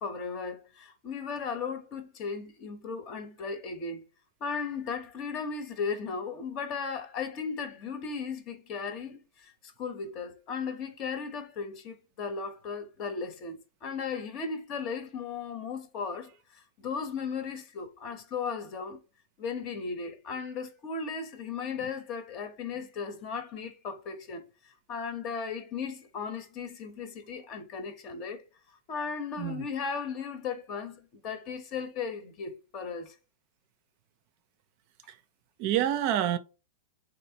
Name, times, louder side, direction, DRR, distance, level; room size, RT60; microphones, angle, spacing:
voice 1, 0.0-4.0 4.4-19.0 19.4-28.4 28.9-33.1, left 5 dB, 40° left, 0.8 m, -36 dB
voice 2, 35.6-36.4, right 11 dB, 50° right, 0.4 m, -28 dB
3.3 x 2.6 x 2.7 m
hypercardioid pair, 100°, 0 cm